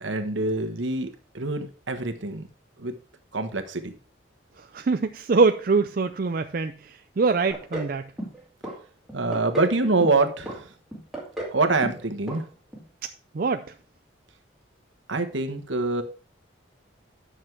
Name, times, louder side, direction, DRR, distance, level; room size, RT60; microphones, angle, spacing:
voice 1, 0.0-2.5 2.8-2.9 3.3-3.9 9.1-10.7 11.5-12.4 15.1-16.0, right 3 dB, 75° right, 1.3 m, -25 dB
voice 2, 4.6-8.0 13.3-13.6, right 4 dB, 45° right, 0.4 m, -24 dB
sound 1, 7.5-7.9 8.2-8.8 9.1-9.7 10.0-10.6 10.9-11.6 11.8-12.0 12.3-12.4 12.7-12.8, right 1 dB, ahead, 2.4 m, -33 dB
10.0 x 6.4 x 4.6 m
head